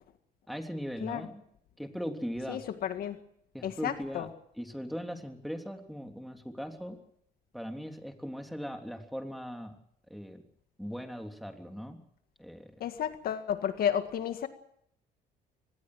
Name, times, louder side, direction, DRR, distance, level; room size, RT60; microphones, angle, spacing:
voice 1, 0.5-1.4 1.8-2.6 3.5-4.3 4.5-7.0 7.5-9.8 10.1-10.4 10.8-12.0 12.4-12.7, equal, ahead, 4 dB, 3.3 m, -39 dB
voice 2, 2.5-3.2 3.6-4.3 12.8-14.5, left 9 dB, 60° left, 8 dB, 1.9 m, -32 dB
24.5 x 19.5 x 6.3 m, 0.70 s
cardioid pair, 110°, 17 cm